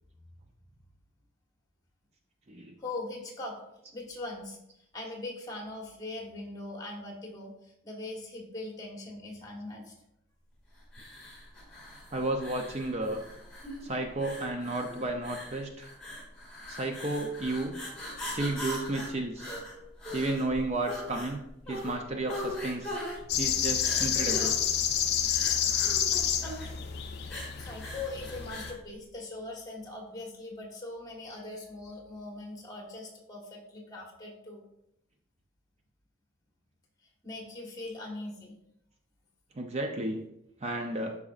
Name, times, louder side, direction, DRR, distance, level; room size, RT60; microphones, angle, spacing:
voice 1, 2.8-3.6 3.9-4.6 4.9-9.9 27.6-34.6 37.2-38.5, left 2 dB, 20° left, 0 dB, 1.4 m, -41 dB
sound 1, 10.9-28.8, left 1 dB, 5° left, 3.0 m, -41 dB
voice 2, 12.1-13.2 13.8-15.9 16.7-17.8 18.3-19.6 20.1-21.4 21.7-23.0 23.4-24.6 39.6-40.2 40.6-41.2, right 2 dB, 30° right, 3 dB, 0.5 m, -32 dB
sound 2, 23.3-28.7, left 8 dB, 50° left, 0.5 m, -29 dB
12.0 x 4.9 x 2.5 m, 0.82 s
head